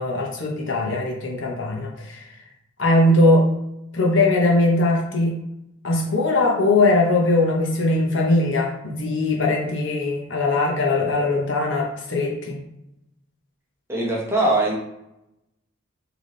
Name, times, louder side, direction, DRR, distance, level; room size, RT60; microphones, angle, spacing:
voice 1, 0.0-2.4 2.8-3.5 3.9-5.4 5.8-12.6, left 2 dB, 65° left, -1 dB, 0.9 m, -20 dB
voice 2, 13.9-14.8, right 2 dB, 10° right, -3 dB, 0.8 m, -21 dB
3.4 x 2.9 x 3.8 m, 0.85 s
head